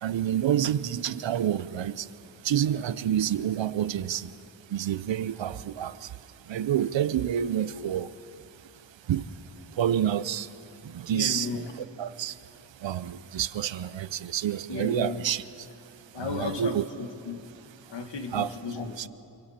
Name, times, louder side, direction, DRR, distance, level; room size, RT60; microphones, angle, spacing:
voice 1, 0.0-2.1 2.4-4.3 4.7-6.2 6.5-8.1 9.1-9.3 9.7-10.5 10.8-12.4 12.8-15.7 16.1-16.9 18.3-18.5 19.0-19.1, right 10 dB, 75° right, 0.7 m, -28 dB
voice 2, 11.1-11.7 14.7-15.2 16.1-17.4 17.9-19.1, left 4 dB, 65° left, 1.7 m, -34 dB
26.0 x 24.5 x 4.3 m
wide cardioid pair, 140°, 45 cm